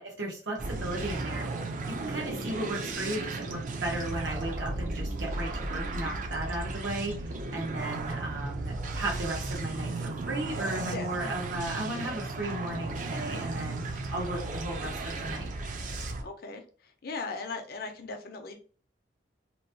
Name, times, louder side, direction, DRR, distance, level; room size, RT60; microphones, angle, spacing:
voice 1, 0.0-1.5 1.9-15.5, right 1 dB, 85° right, -2 dB, 0.9 m, -35 dB
sound 1, 0.6-16.2, right 3 dB, 45° right, 0.4 m, -35 dB
voice 2, 16.0-16.6 17.0-18.6, left 3 dB, 55° left, 5 dB, 0.5 m, -38 dB
2.9 x 2.2 x 2.7 m, 0.39 s
head